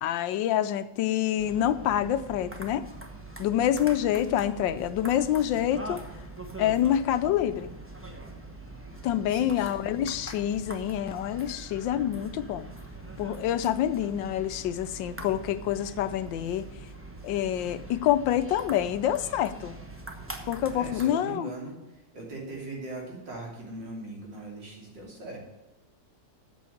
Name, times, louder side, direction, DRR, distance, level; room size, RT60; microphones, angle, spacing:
voice 1, 0.0-2.9 3.4-6.0 6.6-7.7 9.0-12.7 13.2-16.7 17.2-19.7 20.5-21.5, left 11 dB, 85° left, 13 dB, 1.4 m, -27 dB
sound 1, 1.4-21.1, right 2 dB, 10° right, 0.7 m, -43 dB
voice 2, 9.3-9.9 20.7-25.4, right 2 dB, 75° right, -2 dB, 3.6 m, -40 dB
8.4 x 6.9 x 8.4 m, 1.0 s
omnidirectional pair, 2.0 m